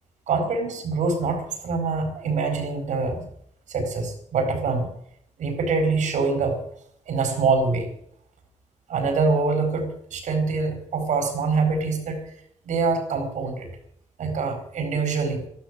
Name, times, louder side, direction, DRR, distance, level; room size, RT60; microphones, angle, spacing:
voice 1, 0.3-3.3 3.7-4.9 5.4-6.6 7.1-7.9 8.9-12.2 12.7-13.7 14.2-15.4, right 4 dB, 85° right, 6 dB, 4.7 m, -24 dB
13.5 x 12.0 x 7.7 m, 0.68 s
cardioid pair, 120°, 12 cm